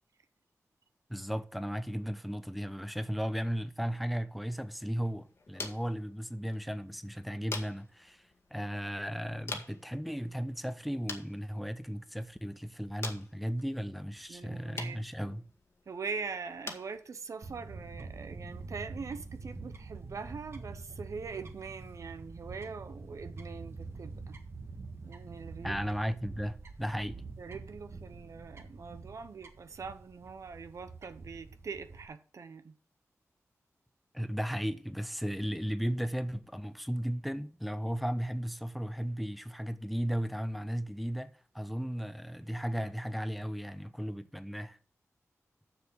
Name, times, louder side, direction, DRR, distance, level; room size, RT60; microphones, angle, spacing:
voice 1, 1.1-8.2 8.5-15.5 25.6-27.2 34.1-44.8, equal, ahead, 0.9 m, -35 dB
sound 1, 4.4-19.4, left 3 dB, 50° left, 1.9 m, -48 dB
voice 2, 14.3-15.4 15.9-24.4 25.0-25.8 26.1-26.2 27.4-32.8, right 5 dB, 70° right, 0.8 m, -43 dB
Fowl / Bird, 17.4-32.0, right 3 dB, 50° right, 1.5 m, -46 dB
6.9 x 6.7 x 7.3 m
wide cardioid pair, 90°, 6 cm